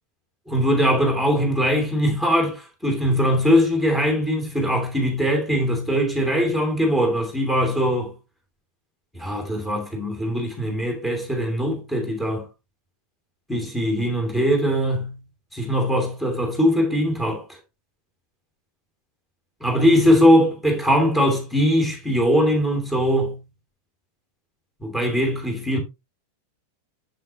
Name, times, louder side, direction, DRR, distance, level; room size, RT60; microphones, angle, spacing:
voice 1, 0.5-8.1 9.1-12.4 13.5-15.2 15.5-17.4 19.6-23.4 24.8-25.8, equal, 5° left, 2.8 m, -21 dB
7.5 x 7.3 x 2.9 m
figure-of-eight pair, 90°, 0 cm